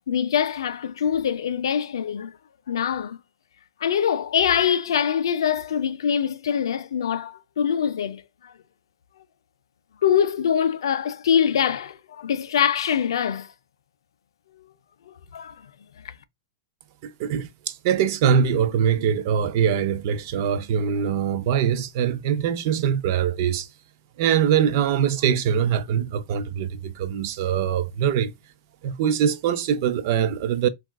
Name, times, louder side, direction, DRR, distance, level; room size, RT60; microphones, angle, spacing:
voice 1, 0.1-2.4 2.7-3.2 3.8-8.5 10.0-13.5 15.3-15.7 16.0-16.1, left 8 dB, 90° left, 0.4 m, -24 dB
voice 2, 17.0-23.7 24.2-28.3 28.8-30.7, right 8 dB, 45° right, 0.3 m, -23 dB
3.5 x 2.3 x 2.2 m
supercardioid pair, 165°, 2 cm